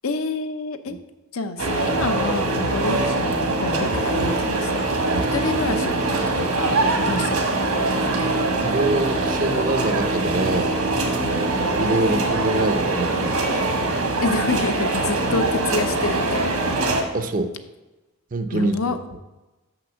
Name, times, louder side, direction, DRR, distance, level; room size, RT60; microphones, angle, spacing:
voice 1, 0.0-1.0 1.3-4.9 5.3-7.5 11.2-11.5 14.2-16.6 18.5-19.0, left 3 dB, 70° left, 9 dB, 0.7 m, -28 dB
sound 1, 1.6-17.0, right 2 dB, 85° right, 1.6 m, -23 dB
voice 2, 8.6-10.8 11.8-13.4 17.1-17.5 18.3-18.8, right 2 dB, 40° right, 9 dB, 0.5 m, -24 dB
6.8 x 6.0 x 6.3 m, 1.1 s
head